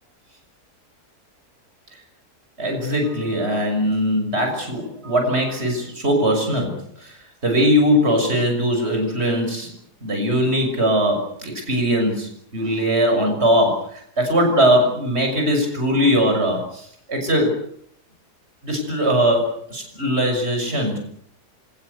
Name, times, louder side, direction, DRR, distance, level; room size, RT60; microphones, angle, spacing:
voice 1, 2.6-9.7 10.0-17.6 18.6-21.0, equal, 40° right, 3 dB, 6.5 m, -20 dB
27.5 x 19.0 x 8.2 m, 0.67 s
omnidirectional pair, 1.7 m